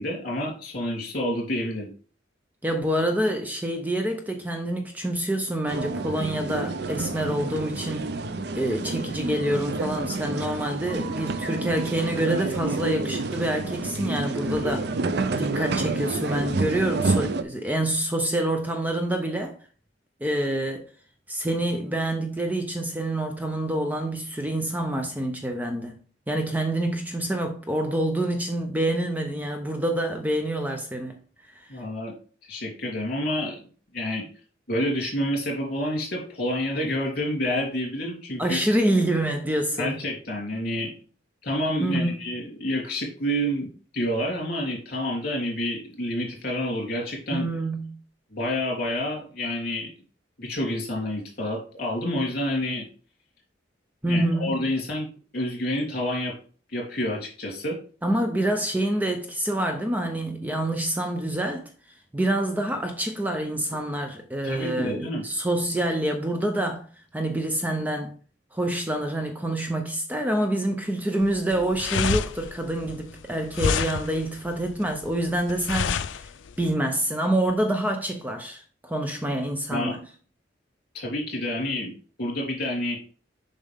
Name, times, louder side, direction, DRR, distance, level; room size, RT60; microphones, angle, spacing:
voice 1, 0.0-1.9 8.8-8.9 31.7-32.1 32.4-33.6 33.9-34.3 34.7-38.6 39.8-40.9 41.4-47.5 48.3-49.9 50.4-52.9 54.1-55.1 55.3-56.3 56.7-57.8 64.4-65.2 79.7-80.0 80.9-81.9 82.2-83.0, left 1 dB, 55° left, 3.0 m, -28 dB
voice 2, 2.6-8.1 8.5-14.9 15.4-19.5 20.2-20.9 21.3-26.0 26.3-31.2 31.5-31.7 38.4-40.0 41.8-42.2 47.3-48.0 54.0-54.5 58.0-61.7 62.1-66.9 67.1-68.1 68.5-76.3 76.6-80.0, right 1 dB, 10° right, 0.6 m, -27 dB
sound 1, 5.7-17.4, right 3 dB, 60° right, 0.5 m, -29 dB
sound 2, 71.2-76.7, left 6 dB, 80° left, 0.4 m, -29 dB
7.3 x 5.4 x 3.5 m
head